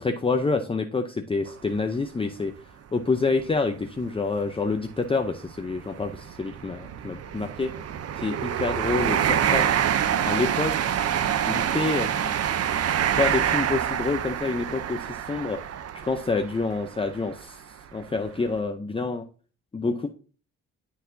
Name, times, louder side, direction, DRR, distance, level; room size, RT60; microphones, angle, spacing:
voice 1, 0.0-2.5 2.9-7.7 8.2-9.7 10.2-10.9 11.4-12.3 13.1-15.6 16.0-17.6 17.9-19.2 19.7-20.1, left 3 dB, 20° left, 5 dB, 0.7 m, -27 dB
sound 1, 1.5-1.6 2.2-2.3 3.5-3.6 3.8-4.0 4.7-17.4 18.0-18.2, right 9 dB, 55° right, 0.7 m, -26 dB
11.5 x 4.0 x 2.7 m, 0.38 s
cardioid pair, 90°, 30 cm